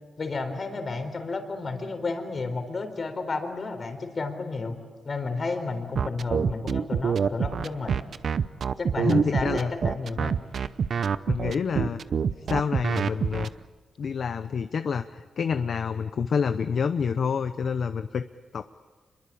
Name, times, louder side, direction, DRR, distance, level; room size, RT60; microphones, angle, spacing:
voice 1, 0.2-4.8 5.0-8.0 8.8-10.4, left 3 dB, 45° left, 7 dB, 4.0 m, -32 dB
sound 1, 5.9-13.5, right 6 dB, 60° right, 0.7 m, -25 dB
voice 2, 9.0-9.9 11.3-12.0 12.5-13.5 14.0-18.2 18.5-18.6, left 6 dB, 60° left, 10 dB, 0.8 m, -28 dB
26.5 x 22.5 x 8.6 m, 1.4 s
cardioid pair, 110°, 0 cm